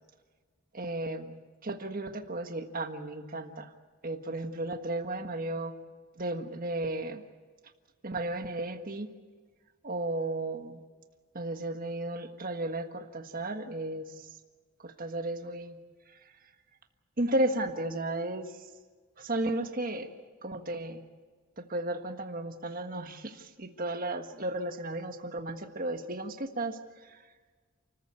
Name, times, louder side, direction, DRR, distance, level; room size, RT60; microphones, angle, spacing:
voice 1, 0.7-1.3 1.6-3.7 4.0-5.8 6.2-7.2 8.0-9.1 9.8-10.8 11.3-14.3 14.8-15.8 16.1-16.4 17.2-18.7 19.2-20.1 20.4-21.0 21.6-27.2, right 2 dB, 40° right, 6 dB, 1.5 m, -34 dB
29.5 x 14.5 x 8.3 m, 1.5 s
head